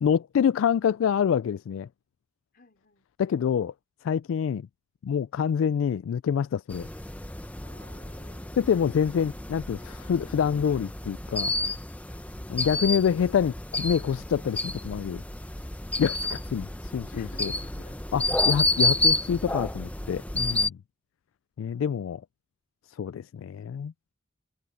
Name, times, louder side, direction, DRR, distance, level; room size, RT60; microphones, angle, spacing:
voice 1, 0.0-1.9 3.2-3.7 4.0-4.7 5.0-6.9 8.6-11.5 12.5-15.2 16.0-17.5 18.1-20.8 21.6-22.2 23.0-23.9, left 7 dB, 85° left, 0.3 m, -26 dB
voice 2, 2.5-3.1 7.6-9.0 12.1-12.4 17.1-18.4, left 2 dB, 50° left, 4.4 m, -54 dB
sound 1, 6.7-20.7, left 2 dB, 5° left, 0.8 m, -30 dB
head